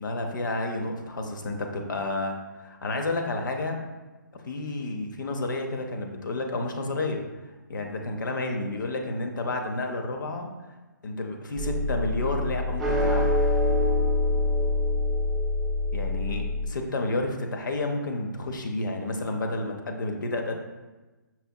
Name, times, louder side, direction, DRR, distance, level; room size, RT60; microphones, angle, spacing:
voice 1, 0.0-3.8 4.4-7.2 7.7-10.5 11.0-13.4 15.9-20.6, left 2 dB, 75° left, 3 dB, 0.6 m, -30 dB
sound 1, 11.6-16.7, left 2 dB, ahead, 0.6 m, -25 dB
5.6 x 2.8 x 2.3 m, 1.2 s
hypercardioid pair, 155°, 11 cm